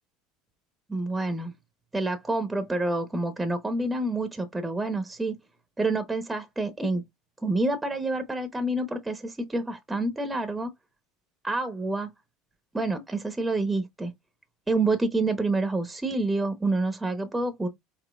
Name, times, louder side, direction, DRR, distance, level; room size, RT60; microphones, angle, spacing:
voice 1, 0.9-1.5 1.9-5.3 5.8-7.0 7.4-10.7 11.4-12.1 12.7-14.1 14.7-17.7, right 2 dB, 10° right, 0.8 m, -28 dB
5.0 x 3.2 x 2.3 m
hypercardioid pair, 90°, 0 cm